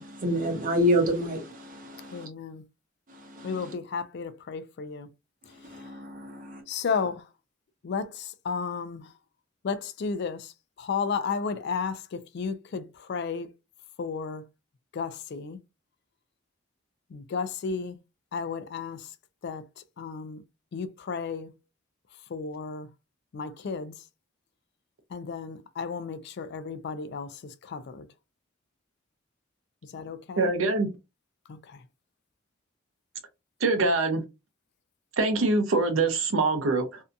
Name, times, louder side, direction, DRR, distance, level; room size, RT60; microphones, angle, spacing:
voice 1, 0.0-2.3 3.4-3.7 5.7-6.6, equal, 45° right, 0.8 m, -28 dB
voice 2, 2.1-2.6 3.4-5.1 6.7-7.2 7.8-9.1 9.6-10.5 10.8-13.5 14.0-14.4 14.9-15.6 17.1-18.0 18.3-19.0 19.4-19.6 20.0-20.4 20.7-21.5 22.3-22.9 23.3-23.9 25.1-27.3 27.7-28.1 29.9-30.5 31.5-31.8, left 5 dB, 55° left, 0.4 m, -33 dB
voice 3, 30.4-30.9 33.6-34.2 35.2-37.0, right 3 dB, 80° right, 0.6 m, -24 dB
2.7 x 2.2 x 2.5 m
head